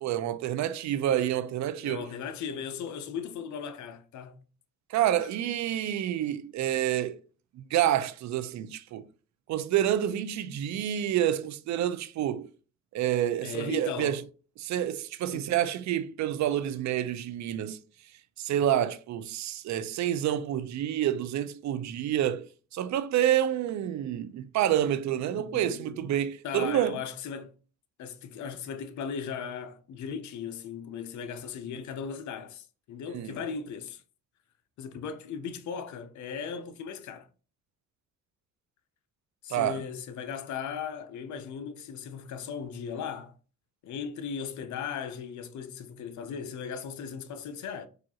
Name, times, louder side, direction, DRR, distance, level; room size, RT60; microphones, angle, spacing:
voice 1, 0.0-2.1 4.9-7.2 7.5-9.1 9.5-12.5 12.9-14.2 14.6-17.8 18.4-27.0 33.1-33.4 39.5-39.8, right 11 dB, 65° right, 0.5 m, -28 dB
voice 2, 1.8-4.4 13.4-14.2 15.3-15.5 25.3-26.1 26.4-27.5 28.0-34.0 34.8-37.3 39.4-43.3 43.8-47.9, left 7 dB, 70° left, 0.6 m, -37 dB
4.8 x 2.4 x 2.8 m
cardioid pair, 90°, 30 cm